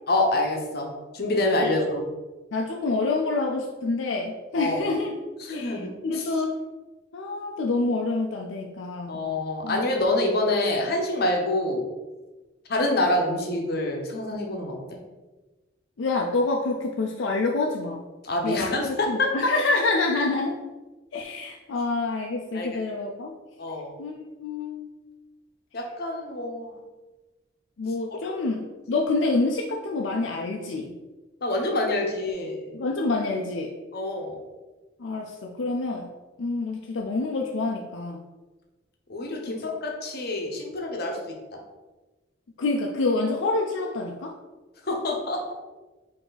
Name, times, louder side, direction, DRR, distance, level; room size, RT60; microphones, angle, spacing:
voice 1, 0.1-2.1 4.6-4.8 5.5-5.9 6.1-6.2 9.1-11.8 12.7-15.0 18.2-19.5 22.5-22.8 23.6-23.9 25.7-26.7 31.4-32.8 33.9-34.4 39.1-41.6 44.9-45.6, left 2 dB, 55° left, 1 dB, 0.8 m, -26 dB
voice 2, 2.5-5.2 5.5-6.6 7.1-9.2 9.6-9.8 16.0-18.0 18.4-20.6 21.1-23.3 24.0-24.9 27.8-30.9 32.7-33.7 35.0-36.1 36.4-38.2 39.5-39.6 42.6-44.3, left 3 dB, 75° left, 0 dB, 0.4 m, -27 dB
4.5 x 2.8 x 4.0 m, 1.2 s
head